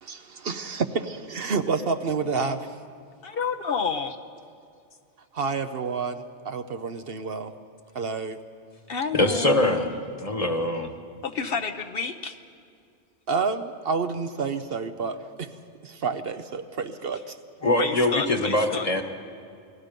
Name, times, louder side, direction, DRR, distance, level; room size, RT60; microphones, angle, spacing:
voice 1, 0.0-2.7 3.6-3.7 5.3-7.5 7.9-8.4 13.3-15.5 15.8-17.4, right 4 dB, 60° right, 9 dB, 1.0 m, -29 dB
voice 2, 3.2-4.2 8.9-9.9 11.2-12.4 17.8-18.9, left 5 dB, 55° left, 7 dB, 1.0 m, -30 dB
voice 3, 9.1-9.9 10.2-10.9 17.6-19.0, left 1 dB, 30° left, 5 dB, 1.4 m, -23 dB
28.5 x 19.5 x 5.3 m, 2.4 s
omnidirectional pair, 1.2 m